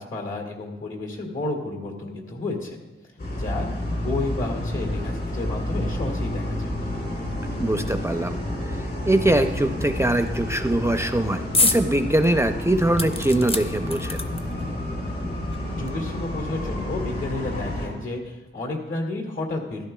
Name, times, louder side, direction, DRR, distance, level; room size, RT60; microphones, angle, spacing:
voice 1, 0.0-2.8 3.4-6.7 15.7-19.8, left 2 dB, 70° left, 2 dB, 2.2 m, -31 dB
sound 1, 3.2-17.9, left 1 dB, 55° left, 3.4 m, -30 dB
voice 2, 7.6-8.4 9.1-14.2, right 1 dB, 15° right, 7 dB, 0.4 m, -22 dB
sound 2, 11.5-11.8 12.2-12.3 13.0-14.6 15.5-15.6 15.9-16.0, left 2 dB, 25° left, 0.6 m, -25 dB
14.0 x 12.0 x 2.3 m, 1.1 s
wide cardioid pair, 120°, 21 cm